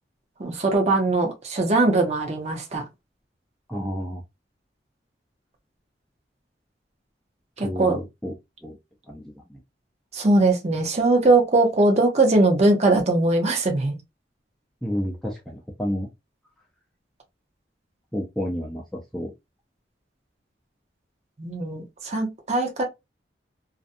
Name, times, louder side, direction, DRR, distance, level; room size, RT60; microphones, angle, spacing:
voice 1, 0.4-2.8 7.6-8.0 10.1-14.0 21.4-22.8, right 2 dB, 40° right, 0.7 m, -21 dB
voice 2, 3.7-4.2 7.6-8.3 8.6-8.8 9.1-9.6 14.8-16.1 18.1-19.3, equal, ahead, 0.4 m, -30 dB
2.5 x 2.2 x 2.5 m
head